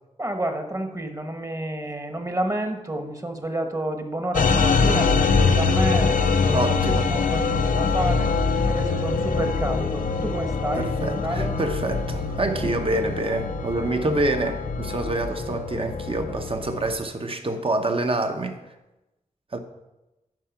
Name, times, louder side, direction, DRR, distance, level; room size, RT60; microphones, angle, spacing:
voice 1, 0.2-8.3 8.7-11.5, right 1 dB, 25° right, 6 dB, 1.2 m, -30 dB
sound 1, 4.3-16.9, left 4 dB, 85° left, 0.6 m, -24 dB
voice 2, 6.5-7.1 10.7-18.6 19.5-19.6, right 2 dB, 45° right, 6 dB, 1.0 m, -26 dB
11.0 x 4.7 x 5.9 m, 1.0 s
wide cardioid pair, 75°, 13 cm